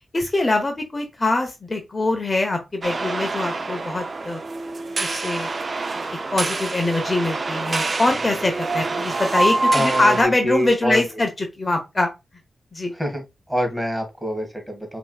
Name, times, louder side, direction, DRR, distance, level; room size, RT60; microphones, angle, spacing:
voice 1, 0.1-4.4 5.0-5.5 5.9-6.0 6.3-12.1 12.7-12.9, left 2 dB, 35° left, 1.0 m, -23 dB
sound 1, 2.8-10.2, right 2 dB, 50° right, 0.5 m, -25 dB
voice 2, 9.7-11.2 12.9-15.0, equal, 10° right, 1.8 m, -26 dB
5.3 x 3.0 x 2.3 m
cardioid pair, 45°, 0 cm